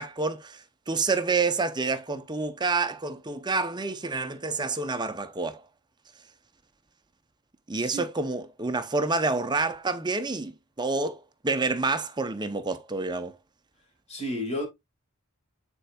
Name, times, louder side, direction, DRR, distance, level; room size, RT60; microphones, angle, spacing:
voice 1, 0.0-5.6 7.7-13.3, right 3 dB, 20° right, 0.7 m, -28 dB
voice 2, 7.7-8.1 14.1-14.7, equal, 30° left, 2.2 m, -32 dB
9.7 x 4.4 x 2.3 m
head